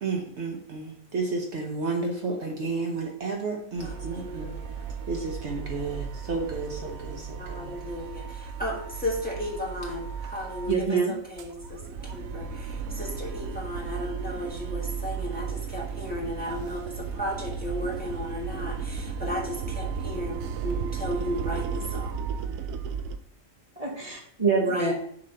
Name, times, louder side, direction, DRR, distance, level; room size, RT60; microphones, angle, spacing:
voice 1, 0.0-4.5 5.1-7.8, right 3 dB, 60° right, 2 dB, 1.0 m, -32 dB
voice 2, 3.8-4.6 7.4-11.8 12.1-20.4 20.6-22.2 24.6-24.9, equal, 5° left, -4 dB, 1.4 m, -34 dB
sound 1, 3.8-10.9 11.2-23.2, right 6 dB, 85° right, 1.0 m, -35 dB
voice 3, 10.7-11.1 23.8-24.9, right 5 dB, 30° right, -2 dB, 1.2 m, -25 dB
6.7 x 3.3 x 5.5 m, 0.64 s
omnidirectional pair, 1.4 m